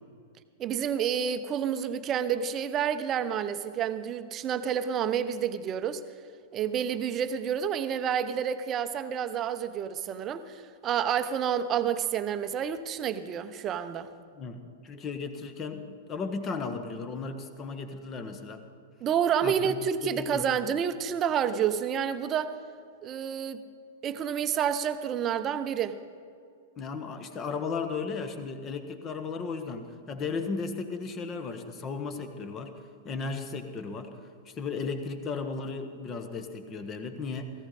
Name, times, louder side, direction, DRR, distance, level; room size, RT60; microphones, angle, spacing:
voice 1, 0.6-6.0 6.5-14.1 19.0-22.5 23.0-23.6 24.0-26.0, right 8 dB, 30° right, 11 dB, 0.8 m, -29 dB
voice 2, 14.4-18.6 19.4-20.5 26.8-32.7 33.0-34.1 34.4-37.5, left 4 dB, 25° left, 7 dB, 1.4 m, -35 dB
17.5 x 15.0 x 4.2 m, 2.3 s
figure-of-eight pair, 100°, 0 cm